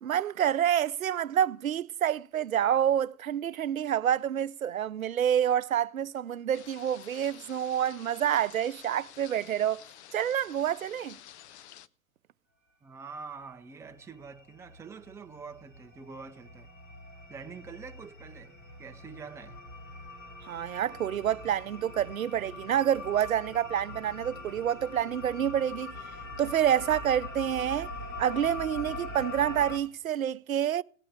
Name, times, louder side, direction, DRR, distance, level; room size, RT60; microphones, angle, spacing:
voice 1, 0.0-9.8 10.1-11.2 20.4-25.9 26.4-27.9 28.2-30.8, right 10 dB, 80° right, 0.6 m, -28 dB
sound 1, 6.5-11.9, left 12 dB, 55° left, 0.8 m, -51 dB
voice 2, 12.8-16.7 17.3-19.6, right 5 dB, 5° right, 0.6 m, -45 dB
sound 2, 13.3-13.5 13.8-29.8, left 3 dB, 25° left, 2.8 m, -43 dB
17.5 x 8.7 x 4.9 m
figure-of-eight pair, 105°, 41 cm